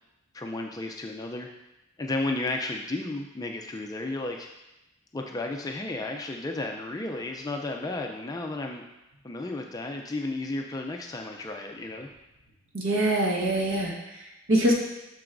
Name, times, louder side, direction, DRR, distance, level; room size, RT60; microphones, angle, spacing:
voice 1, 0.3-1.5 2.0-4.5 5.1-8.9 9.2-12.1, left 2 dB, 15° left, 2 dB, 0.3 m, -33 dB
voice 2, 12.7-14.7, right 1 dB, 60° right, -1 dB, 1.2 m, -25 dB
7.7 x 6.1 x 2.5 m, 0.95 s
head